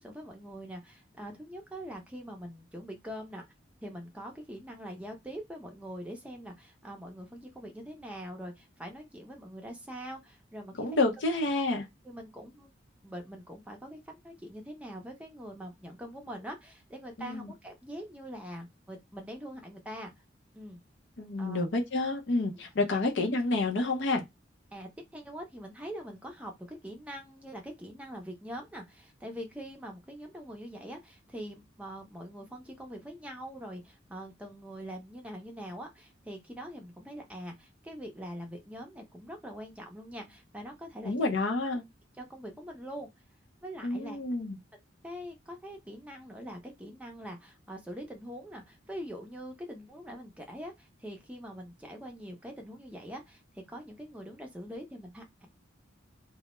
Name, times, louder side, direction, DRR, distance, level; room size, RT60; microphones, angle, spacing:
voice 1, 0.0-3.4 3.8-10.7 12.0-12.7 13.0-20.1 20.5-20.8 21.4-21.7 22.9-23.0 24.7-41.3 42.2-43.1 43.6-44.2 45.0-55.5, equal, 5° right, 0.5 m, -43 dB
voice 2, 10.8-11.8 17.2-17.5 21.2-24.2 41.0-41.8 43.8-44.6, left 2 dB, 65° left, 0.6 m, -29 dB
2.2 x 2.0 x 2.9 m
head